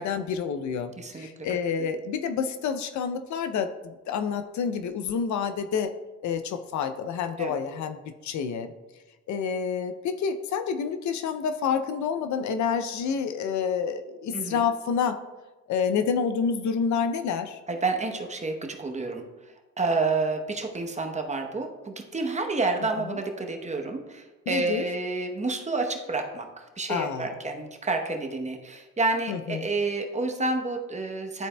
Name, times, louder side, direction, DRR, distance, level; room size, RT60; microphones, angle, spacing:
voice 1, 0.0-5.9 6.2-8.7 9.3-15.2 15.7-17.6 24.5-24.9 26.9-27.3 29.3-29.7, left 6 dB, 70° left, 9 dB, 0.6 m, -28 dB
voice 2, 1.0-1.9 7.4-7.5 14.3-14.6 17.7-31.5, right 3 dB, 25° right, 4 dB, 0.9 m, -29 dB
12.0 x 4.1 x 2.2 m, 1.1 s
cardioid pair, 90°, 30 cm